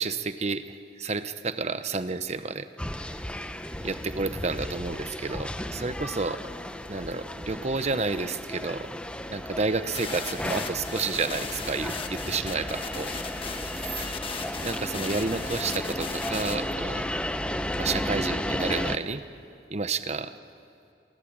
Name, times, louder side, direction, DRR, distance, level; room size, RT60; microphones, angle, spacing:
voice 1, 0.0-2.7 3.8-6.4 6.9-8.9 9.3-13.1 14.0-14.2 14.6-17.1 17.8-19.2 19.7-20.3, right 4 dB, 40° right, 11 dB, 0.9 m, -30 dB
sound 1, 2.8-19.0, left 1 dB, 5° left, 0.8 m, -34 dB
sound 2, 9.9-16.6, left 5 dB, 30° left, 1.5 m, -38 dB
28.0 x 22.0 x 8.8 m, 2.5 s
head